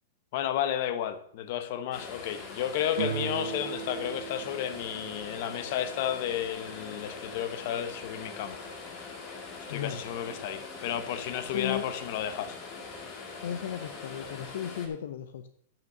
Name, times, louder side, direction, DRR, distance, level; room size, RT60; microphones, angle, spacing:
voice 1, 0.3-8.6 9.7-12.6, left 10 dB, 55° left, 11 dB, 1.0 m, -32 dB
sound 1, 1.9-14.9, left 4 dB, 30° left, 2.1 m, -42 dB
sound 2, 2.9-6.6, right 8 dB, 70° right, 0.7 m, -39 dB
voice 2, 9.7-10.0 11.5-11.9 13.4-15.5, left 10 dB, 75° left, 10 dB, 0.7 m, -35 dB
9.1 x 5.9 x 6.6 m, 0.62 s
supercardioid pair, 145°, 0 cm